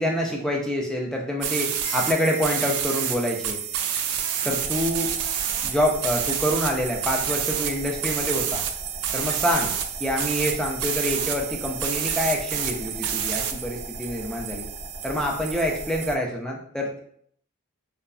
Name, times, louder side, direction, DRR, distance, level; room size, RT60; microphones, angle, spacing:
voice 1, 0.0-3.6 4.5-5.1 5.6-8.6 9.1-9.7 10.0-14.7 15.0-17.0, equal, 5° left, -1 dB, 0.3 m, -26 dB
sound 1, 1.4-16.2, right 9 dB, 80° right, 0.3 m, -29 dB
sound 2, 1.8-3.8, left 5 dB, 35° left, 0.9 m, -44 dB
sound 3, 4.6-16.1, equal, 20° left, 1.2 m, -41 dB
3.1 x 2.0 x 2.4 m, 0.65 s
head